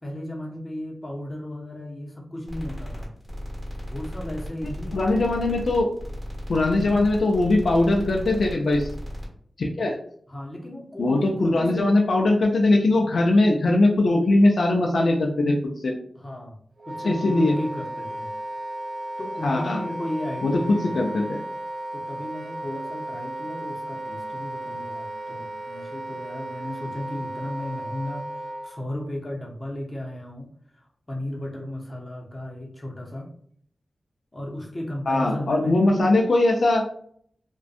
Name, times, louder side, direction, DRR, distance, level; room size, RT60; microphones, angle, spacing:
voice 1, 0.0-3.1 3.9-5.0 6.8-6.9 10.3-11.9 16.2-16.6 16.9-18.3 19.2-21.3 21.9-30.5 31.1-33.3 34.3-36.0, left 1 dB, 25° left, -2 dB, 0.7 m, -35 dB
sound 1, 2.5-9.3, equal, 30° right, 1.2 m, -35 dB
voice 2, 4.9-5.9 6.5-8.9 9.6-9.9 11.0-15.5 15.8-15.9 17.0-17.5 19.4-19.8 20.4-21.4 35.1-36.8, left 2 dB, 70° left, 0 dB, 0.4 m, -20 dB
Wind instrument woodwind instrument, 16.8-28.7, right 1 dB, 60° right, 0.3 m, -35 dB
2.6 x 2.2 x 2.4 m, 0.62 s
wide cardioid pair, 70°, 0 cm